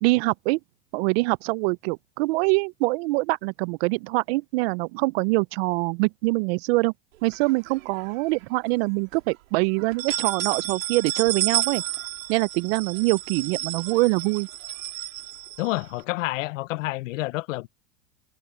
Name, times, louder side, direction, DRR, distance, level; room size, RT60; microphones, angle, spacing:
voice 1, 0.0-0.6 0.9-6.9 7.2-11.8 12.3-14.5, right 25 dB, 50° right, 0.6 m, -24 dB
sound 1, 7.3-8.2 8.7-8.8 9.1-9.2 9.8-16.0, right 17 dB, 80° right, 3.3 m, -31 dB
voice 2, 15.6-17.7, left 19 dB, 70° left, 1.0 m, -29 dB
supercardioid pair, 135°, 39 cm